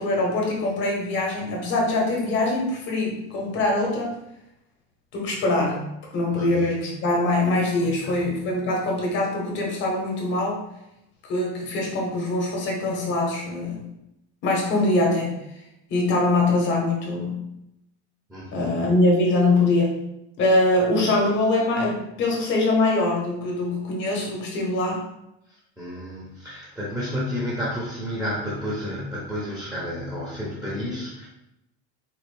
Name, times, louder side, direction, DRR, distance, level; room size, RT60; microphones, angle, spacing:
voice 1, 0.0-4.2 5.1-5.9 6.1-10.6 11.2-13.9 14.4-15.6 15.9-17.5 18.5-20.0 20.4-25.0, left 2 dB, 35° left, -1 dB, 1.0 m, -23 dB
voice 2, 7.8-8.3 18.3-18.7 25.5-31.3, equal, ahead, -6 dB, 0.7 m, -31 dB
4.2 x 2.5 x 3.3 m, 0.85 s
cardioid pair, 165°, 34 cm